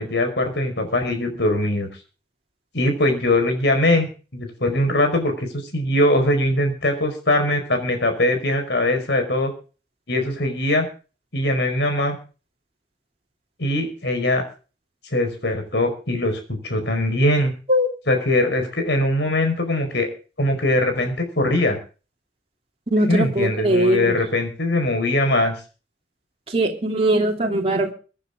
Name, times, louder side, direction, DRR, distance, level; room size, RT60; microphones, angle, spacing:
voice 1, 0.0-1.9 2.7-9.5 10.1-10.9 11.3-12.2 13.6-14.4 15.1-17.5 18.1-20.1 20.4-21.8 23.1-25.6, left 1 dB, 70° left, 6 dB, 5.2 m, -21 dB
voice 2, 22.9-24.1 26.5-27.9, right 1 dB, 35° right, 0 dB, 2.9 m, -20 dB
24.0 x 10.0 x 3.8 m, 0.36 s
head